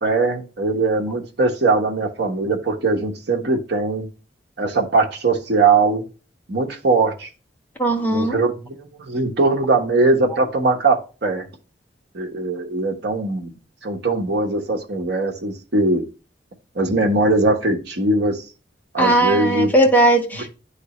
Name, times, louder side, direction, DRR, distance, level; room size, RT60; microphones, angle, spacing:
voice 1, 0.0-4.1 4.6-6.0 6.5-7.3 8.0-11.5 12.1-13.5 13.8-16.0 16.7-18.4 18.9-19.7, right 3 dB, 65° right, 1.2 m, -20 dB
voice 2, 7.8-8.4 19.0-20.5, right 1 dB, 10° left, 1.0 m, -17 dB
9.9 x 3.3 x 3.0 m
head